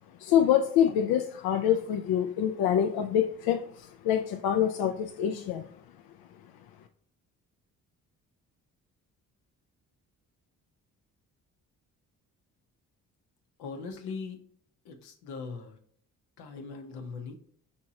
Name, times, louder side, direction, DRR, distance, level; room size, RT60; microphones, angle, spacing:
voice 1, 0.2-5.6, left 9 dB, 70° left, 6 dB, 0.5 m, -26 dB
voice 2, 13.6-14.4 14.8-15.8 16.4-17.4, left 4 dB, 85° left, 5 dB, 0.9 m, -40 dB
4.2 x 3.5 x 2.8 m, 0.63 s
supercardioid pair, 65°, 38 cm